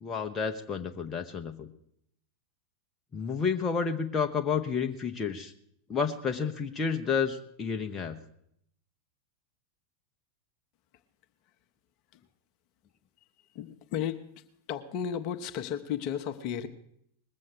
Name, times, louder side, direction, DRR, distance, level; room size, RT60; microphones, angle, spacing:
voice 1, 0.0-1.7 3.1-5.5 5.9-8.2, left 6 dB, 20° left, 3 dB, 0.9 m, -30 dB
voice 2, 13.5-16.7, left 9 dB, 40° left, 8 dB, 0.9 m, -34 dB
20.5 x 7.6 x 6.5 m, 0.72 s
figure-of-eight pair, 90°, 0 cm